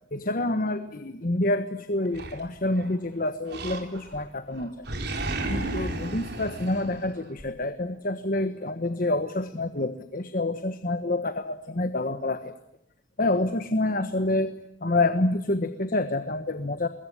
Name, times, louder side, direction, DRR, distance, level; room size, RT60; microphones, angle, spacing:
voice 1, 0.1-4.9 5.5-12.5 13.2-14.5 14.8-16.9, left 2 dB, 45° left, 9 dB, 1.3 m, -27 dB
Animal, 2.1-3.0 3.5-4.3 4.5-7.5, right 2 dB, 60° right, 4.3 m, -33 dB
27.0 x 22.0 x 9.9 m, 0.83 s
head